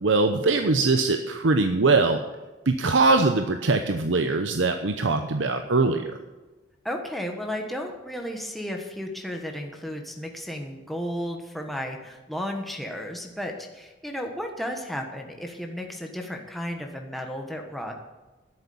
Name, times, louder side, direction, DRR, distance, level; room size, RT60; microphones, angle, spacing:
voice 1, 0.0-2.2 2.7-6.1, right 3 dB, 80° right, 6 dB, 0.8 m, -22 dB
voice 2, 6.8-17.9, equal, ahead, 2 dB, 1.3 m, -33 dB
11.0 x 8.3 x 8.6 m, 1.1 s
head